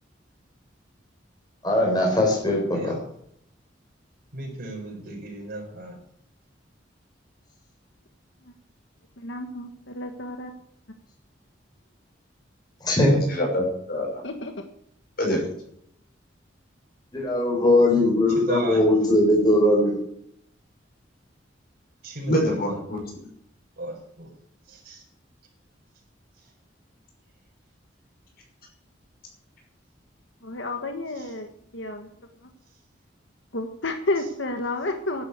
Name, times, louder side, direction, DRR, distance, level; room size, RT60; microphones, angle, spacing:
voice 1, 1.6-2.9 12.8-13.2 17.1-20.0, left 1 dB, 25° left, -1 dB, 4.3 m, -20 dB
voice 2, 4.3-6.0 18.3-19.1 22.0-22.8 23.8-24.3 24.7-25.0, right 2 dB, 60° right, -1 dB, 4.7 m, -35 dB
voice 3, 9.2-10.5 14.2-14.5 30.4-32.1 33.5-35.2, left 2 dB, 80° left, 5 dB, 1.7 m, -31 dB
voice 4, 13.1-14.2 15.2-15.4 22.3-23.2, equal, 55° left, 1 dB, 5.8 m, -26 dB
11.5 x 10.5 x 8.3 m, 0.70 s
head